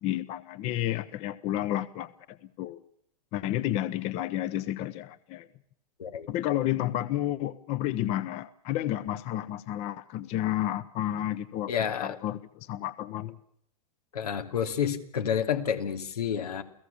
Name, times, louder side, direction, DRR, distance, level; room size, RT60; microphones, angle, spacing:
voice 1, 0.0-2.8 3.3-5.5 6.3-11.7 12.0-13.4, left 13 dB, 35° left, 16 dB, 1.0 m, -31 dB
voice 2, 11.7-12.2 14.1-16.6, left 8 dB, 90° left, 8 dB, 3.0 m, -29 dB
29.5 x 17.0 x 7.2 m, 0.69 s
hypercardioid pair, 140°, 19 cm